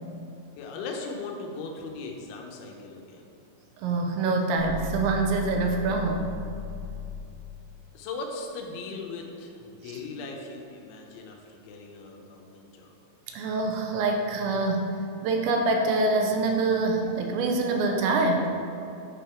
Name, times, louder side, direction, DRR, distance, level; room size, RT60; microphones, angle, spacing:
voice 1, 0.6-3.4 7.9-12.9, left 3 dB, 85° left, 1 dB, 3.2 m, -38 dB
voice 2, 3.8-6.4 13.3-14.9 15.2-18.5, right 3 dB, 85° right, 3 dB, 2.9 m, -25 dB
sound 1, 4.6-7.4, left 8 dB, 55° right, 1.3 m, -37 dB
9.2 x 5.4 x 4.5 m, 2.6 s
omnidirectional pair, 5.3 m